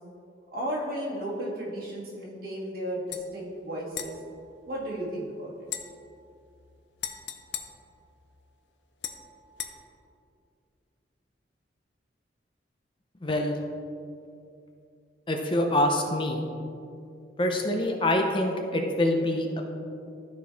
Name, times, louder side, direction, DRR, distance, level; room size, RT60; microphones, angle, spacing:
voice 1, 0.5-4.1 4.7-5.5, right 1 dB, 55° right, -5 dB, 1.9 m, -34 dB
sound 1, 3.1-3.3 3.9-5.2 5.6-8.5 9.0-9.7, left 9 dB, 75° left, 0.6 m, -40 dB
voice 2, 13.2-13.6 15.3-16.4 17.4-19.6, left 1 dB, 30° left, 2 dB, 0.6 m, -25 dB
13.0 x 4.6 x 3.5 m, 2.5 s
head